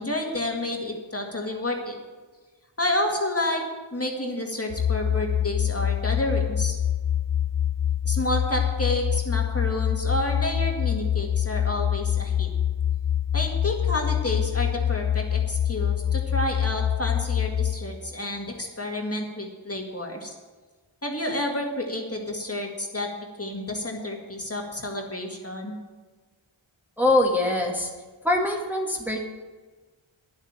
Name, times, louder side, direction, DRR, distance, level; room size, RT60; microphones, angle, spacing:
voice 1, 0.0-2.0 2.8-3.6 3.9-6.8 8.1-12.5 13.3-20.3 21.0-23.1 23.4-25.7, left 1 dB, 30° left, 1 dB, 2.0 m, -30 dB
sound 1, 4.7-17.8, left 10 dB, 55° left, 0.6 m, -25 dB
voice 2, 27.0-27.9 28.2-29.2, left 1 dB, 5° right, -1 dB, 1.7 m, -23 dB
11.0 x 7.3 x 9.0 m, 1.4 s
wide cardioid pair, 70°, 49 cm